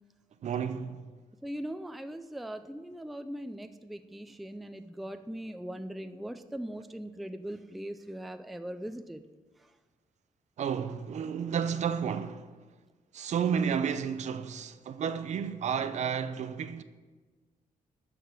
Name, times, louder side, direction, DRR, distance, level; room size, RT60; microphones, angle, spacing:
voice 1, 0.4-1.0 10.6-12.5 13.1-16.8, right 7 dB, 55° right, 0.7 m, -31 dB
voice 2, 1.4-9.2, right 1 dB, ahead, 0.4 m, -40 dB
13.0 x 4.9 x 8.8 m
cardioid pair, 150°, 14 cm